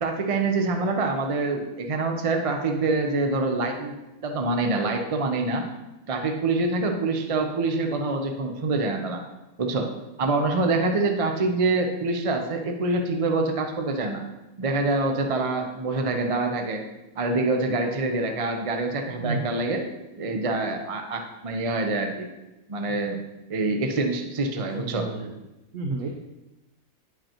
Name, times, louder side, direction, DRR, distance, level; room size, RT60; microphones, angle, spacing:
voice 1, 0.0-4.0 4.2-5.7 6.1-9.2 9.6-9.9 10.2-14.2 14.6-16.8 17.2-19.8 20.2-22.3 22.7-23.2 23.5-25.1, right 3 dB, 40° right, 3 dB, 0.5 m, -25 dB
voice 2, 19.2-19.5 24.7-25.4 25.7-26.1, right 3 dB, 70° right, 2 dB, 1.1 m, -31 dB
10.5 x 5.3 x 2.9 m, 1.0 s
omnidirectional pair, 1.5 m